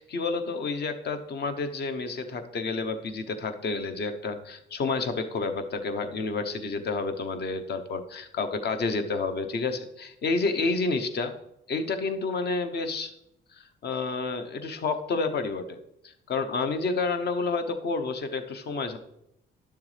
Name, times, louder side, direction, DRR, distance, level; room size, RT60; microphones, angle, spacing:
voice 1, 0.0-11.3 11.7-13.1 13.8-15.8 16.0-19.0, left 3 dB, 55° left, 8 dB, 1.0 m, -29 dB
11.0 x 7.0 x 3.3 m, 0.81 s
cardioid pair, 90°, 20 cm